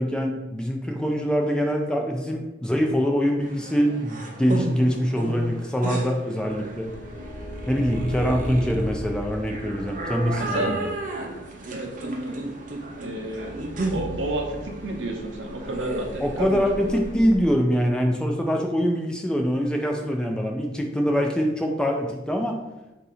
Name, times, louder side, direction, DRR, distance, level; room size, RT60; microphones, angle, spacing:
voice 1, 0.0-6.9 7.7-10.8 16.2-22.6, equal, 5° left, 2 dB, 0.3 m, -24 dB
sound 1, 3.4-17.1, right 2 dB, 45° right, 0.6 m, -34 dB
sound 2, 6.4-17.5, equal, 60° left, 0.6 m, -38 dB
voice 2, 10.3-10.8 11.7-12.4 13.0-13.5 13.9-17.3, right 2 dB, 80° right, 1 dB, 0.8 m, -31 dB
3.6 x 2.8 x 4.1 m, 1.0 s
head